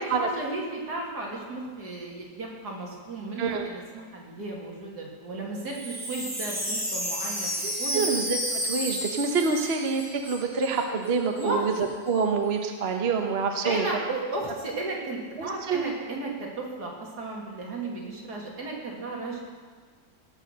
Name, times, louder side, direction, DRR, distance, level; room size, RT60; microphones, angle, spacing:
voice 1, 0.0-7.5 7.8-8.1 11.4-11.7 13.6-19.4, right 2 dB, 70° right, -2 dB, 2.9 m, -34 dB
Wind chime, 5.6-10.8 11.1-11.2 11.4-11.8, equal, 10° right, 1.8 m, -32 dB
voice 2, 7.6-8.4 8.6-11.7 12.1-13.8 15.4-15.8, right 5 dB, 45° right, 4 dB, 1.0 m, -27 dB
17.0 x 6.3 x 6.5 m, 1.5 s
omnidirectional pair, 1.8 m